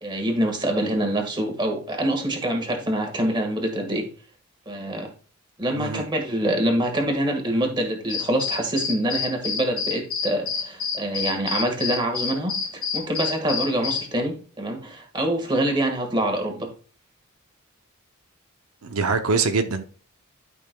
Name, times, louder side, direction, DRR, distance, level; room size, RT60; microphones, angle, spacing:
voice 1, 0.0-4.1 4.7-5.1 5.6-16.7, right 1 dB, 20° right, 1.6 m, -25 dB
sound 1, 8.1-14.1, left 6 dB, 90° left, 1.7 m, -28 dB
voice 2, 18.8-19.8, right 4 dB, 85° right, 0.7 m, -23 dB
11.5 x 5.5 x 2.2 m
head